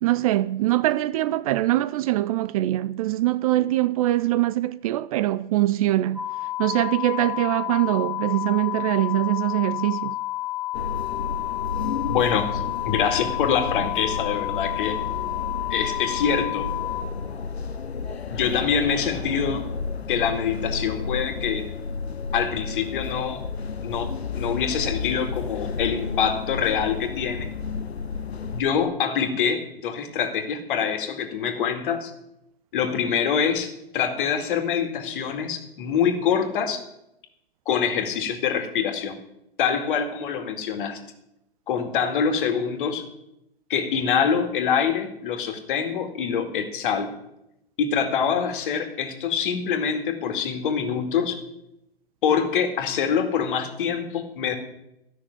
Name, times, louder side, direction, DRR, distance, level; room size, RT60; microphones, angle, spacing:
voice 1, 0.0-6.2 6.6-10.2, right 15 dB, 35° right, 0.4 m, -23 dB
sound 1, 6.1-17.0, left 16 dB, 10° right, 2.0 m, -30 dB
sound 2, 10.7-28.6, left 5 dB, 85° left, 0.7 m, -32 dB
voice 2, 12.0-12.5 12.8-15.0 15.7-16.7 18.3-19.7 20.1-21.7 22.3-23.4 23.8-27.5 28.5-32.1 32.7-36.8 37.7-39.2 39.6-41.0 41.7-43.0 43.7-47.1 47.8-51.4 52.2-54.5, left 7 dB, 55° left, 2.2 m, -25 dB
13.0 x 6.4 x 9.6 m
figure-of-eight pair, 110°, 31 cm